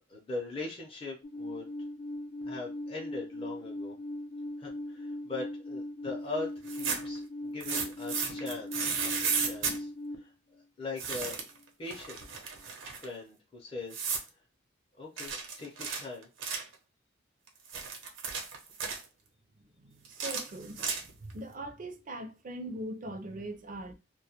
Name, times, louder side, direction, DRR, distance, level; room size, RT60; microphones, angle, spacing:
voice 1, 0.1-1.7 2.4-3.9 4.6-9.9 10.2-10.3 10.8-11.5 11.8-12.3 12.9-14.0 15.0-16.3, left 3 dB, 30° left, 0.6 m, -41 dB
Alarm, 1.2-10.1, left 1 dB, 80° left, 0.5 m, -39 dB
sound 1, 6.6-7.2 7.6-9.8 11.0-11.6 11.9-13.1 13.9-14.3 15.2-16.7 17.5-19.0 20.0-21.3, right 5 dB, 80° right, 0.7 m, -34 dB
voice 2, 19.8-23.9, right 1 dB, 45° right, 0.4 m, -41 dB
2.2 x 2.1 x 2.8 m
head